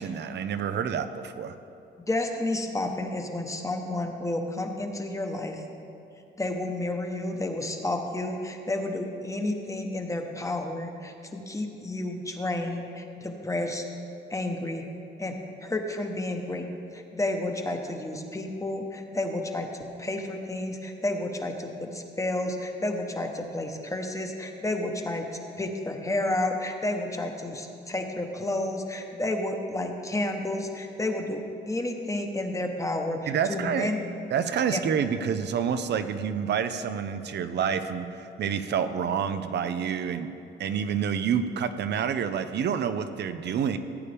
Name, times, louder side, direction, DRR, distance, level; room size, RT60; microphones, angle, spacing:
voice 1, 0.0-1.5 33.3-33.9 34.3-40.3 40.6-43.8, right 7 dB, 60° right, 10 dB, 0.6 m, -28 dB
voice 2, 2.0-5.6 6.4-13.8 14.3-14.8 15.2-19.7 20.0-25.3 25.6-34.0 34.7-34.8, left 1 dB, 15° left, 4 dB, 1.0 m, -31 dB
15.5 x 8.5 x 3.4 m, 2.8 s
cardioid pair, 90°, 20 cm